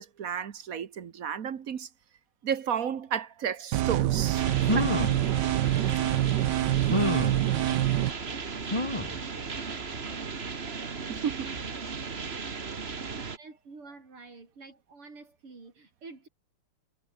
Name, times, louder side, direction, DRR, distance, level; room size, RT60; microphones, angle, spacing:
voice 1, 0.0-1.9 2.4-4.4 4.7-5.0 11.1-11.5, right 8 dB, 45° right, 1.4 m, -32 dB
sound 1, 3.7-8.1, right 14 dB, 65° right, 1.1 m, -26 dB
sound 2, 4.2-4.3 4.6-5.2 6.0-6.1 6.9-7.4 8.7-9.2 9.7-9.8 10.1-10.2, left 1 dB, 15° left, 2.7 m, -28 dB
sound 3, 4.3-13.4, right 5 dB, 30° right, 1.7 m, -36 dB
voice 2, 13.4-16.3, right 3 dB, 85° right, 6.1 m, -49 dB
omnidirectional pair, 2.4 m